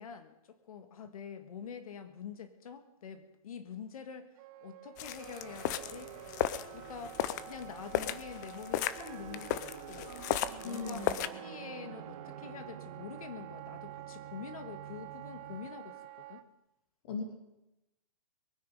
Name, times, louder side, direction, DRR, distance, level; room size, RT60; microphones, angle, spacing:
voice 1, 0.0-4.3 4.6-6.1 6.7-10.2 10.6-16.4, left 7 dB, 75° left, 9 dB, 1.7 m, -46 dB
Wind instrument woodwind instrument, 4.4-16.4, right 16 dB, 25° right, 0.7 m, -49 dB
sound 1, 5.0-11.3, left 12 dB, 30° left, 0.6 m, -36 dB
sound 2, 5.2-15.7, right 8 dB, 75° right, 1.3 m, -50 dB
voice 2, 10.6-11.1 17.0-17.2, left 5 dB, 45° left, 3 dB, 2.9 m, -38 dB
22.5 x 9.7 x 5.5 m, 0.91 s
hypercardioid pair, 165°, 18 cm